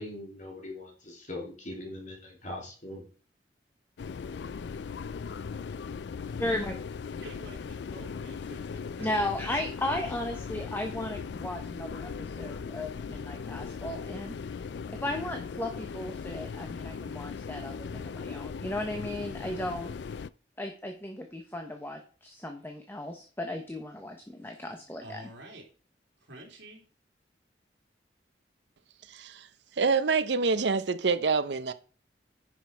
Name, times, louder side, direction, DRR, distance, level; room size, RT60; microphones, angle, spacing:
voice 1, 0.0-3.0, left 1 dB, 45° left, 3.2 m, -41 dB
sound 1, 4.0-20.3, left 5 dB, 65° left, 0.4 m, -38 dB
voice 2, 6.4-6.7 9.0-14.3 15.0-19.9 20.6-25.2, left 1 dB, 10° left, 1.1 m, -35 dB
voice 3, 7.2-9.1 25.0-25.6 26.3-26.8, right 1 dB, 85° right, 3.1 m, -48 dB
voice 4, 29.1-29.5 29.8-31.7, right 4 dB, 70° right, 0.7 m, -26 dB
10.0 x 6.1 x 4.7 m
head